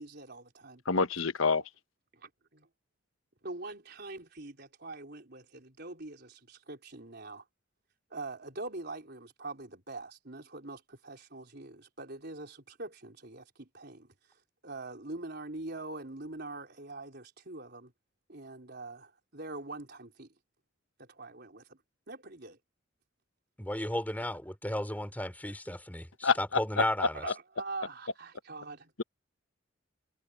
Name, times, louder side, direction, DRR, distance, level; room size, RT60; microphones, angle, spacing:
voice 1, 0.0-0.8 2.1-2.7 3.4-7.4 8.1-14.1 14.6-17.9 18.3-20.3 21.0-21.8 22.1-22.6 25.4-25.5 27.1-28.9, right 2 dB, 50° right, 4.4 m, -43 dB
voice 2, 0.9-1.6 26.2-26.6 27.3-27.4, left 5 dB, 75° left, 1.1 m, -27 dB
voice 3, 23.6-27.2, left 1 dB, 10° left, 4.5 m, -34 dB
head